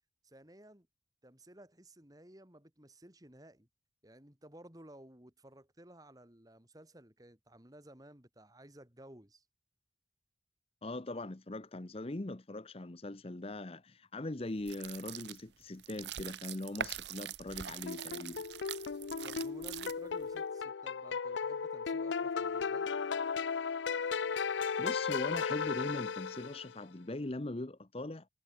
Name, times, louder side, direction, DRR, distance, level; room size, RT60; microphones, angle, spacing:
voice 1, 0.2-0.9 1.2-3.7 4.0-9.4 19.2-22.9, right 1 dB, 20° right, 3.1 m, -56 dB
voice 2, 10.8-18.4 24.8-28.3, left 2 dB, 35° left, 0.8 m, -41 dB
sound 1, 14.6-20.3, right 9 dB, 75° right, 0.9 m, -43 dB
sound 2, 17.9-26.8, left 5 dB, 90° left, 0.5 m, -35 dB
head